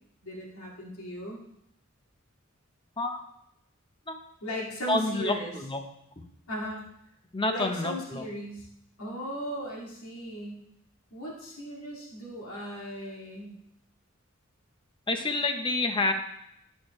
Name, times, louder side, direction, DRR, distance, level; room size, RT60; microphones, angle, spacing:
voice 1, 0.2-1.4 4.4-5.5 6.5-6.9 7.5-8.7 9.0-10.6 11.1-13.6, equal, 90° left, -3 dB, 2.2 m, -37 dB
voice 2, 4.9-5.8 7.3-8.2 15.1-16.1, left 2 dB, 25° left, 5 dB, 0.8 m, -28 dB
11.5 x 6.3 x 3.2 m, 0.77 s
head